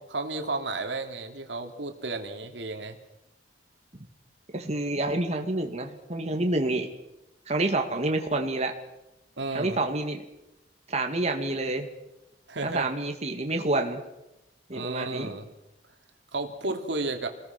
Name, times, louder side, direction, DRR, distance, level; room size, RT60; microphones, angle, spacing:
voice 1, 0.1-3.0 9.4-9.8 12.5-12.9 14.7-15.5 16.3-17.3, right 2 dB, 80° right, 5 dB, 2.7 m, -32 dB
voice 2, 4.5-6.9 7.5-8.7 9.5-10.2 10.9-11.9 12.6-14.0 14.7-15.4, right 2 dB, 40° right, 4 dB, 2.3 m, -28 dB
27.5 x 20.5 x 6.0 m, 0.93 s
head